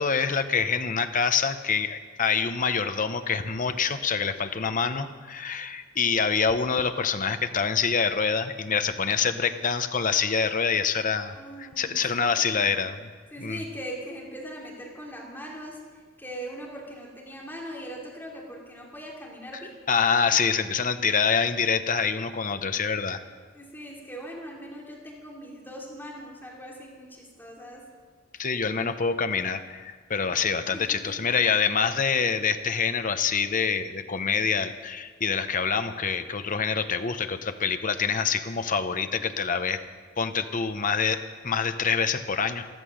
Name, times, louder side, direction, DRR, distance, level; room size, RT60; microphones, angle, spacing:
voice 1, 0.0-11.3 11.6-13.1 13.4-13.6 19.9-23.2 28.4-39.8 40.2-42.7, left 6 dB, 40° left, 9 dB, 0.9 m, -26 dB
voice 2, 11.3-12.6 13.3-15.8 16.2-19.8 23.5-27.8 30.9-31.2, equal, 10° left, -3 dB, 2.9 m, -40 dB
14.5 x 13.5 x 6.4 m, 1.5 s
head